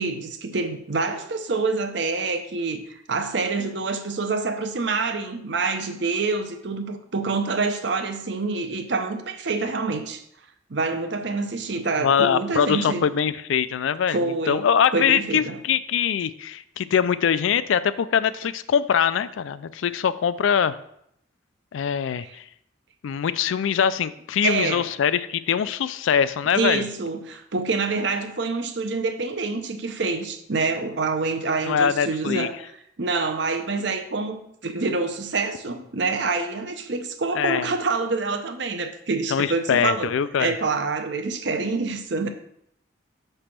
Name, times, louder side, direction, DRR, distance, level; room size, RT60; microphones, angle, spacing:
voice 1, 0.0-10.2 10.7-13.0 14.1-15.6 22.2-22.3 24.4-24.9 26.5-32.5 33.0-40.1 40.4-42.3, right 3 dB, 60° right, 0.7 m, -26 dB
voice 2, 12.0-14.2 14.5-20.8 21.7-22.4 23.0-26.8 31.6-32.5 37.3-37.7 39.3-40.5, left 7 dB, 80° left, 0.3 m, -23 dB
6.0 x 3.3 x 5.8 m
head